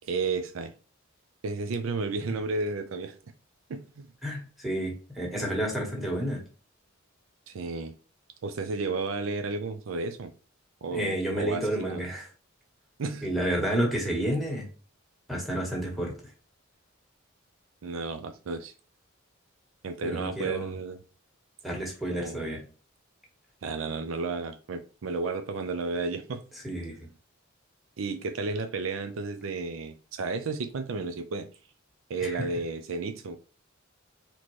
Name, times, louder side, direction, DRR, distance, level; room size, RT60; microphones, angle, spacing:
voice 1, 0.0-0.7 1.4-3.2 3.7-4.1 7.5-7.9 8.4-10.3 10.8-12.0 13.0-13.3 17.8-18.7 19.8-21.0 22.1-22.4 23.6-26.4 28.0-31.5 32.1-33.4, right 3 dB, 70° right, 9 dB, 0.5 m, -32 dB
voice 2, 4.2-6.4 10.9-12.3 13.2-14.6 15.3-16.1 20.0-20.7 21.6-22.6 26.6-27.0 32.2-32.4, right 1 dB, ahead, -1 dB, 1.5 m, -30 dB
4.2 x 2.9 x 3.1 m, 0.36 s
head